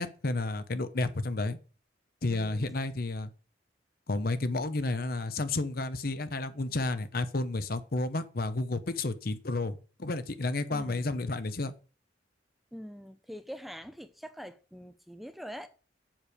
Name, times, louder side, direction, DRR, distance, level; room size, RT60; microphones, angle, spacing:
voice 1, 0.0-1.6 2.2-3.3 4.1-11.7, left 2 dB, 50° left, 0.8 m, -31 dB
voice 2, 2.3-2.6 10.7-11.1 12.7-15.7, equal, ahead, 0.5 m, -44 dB
7.3 x 5.0 x 6.7 m
head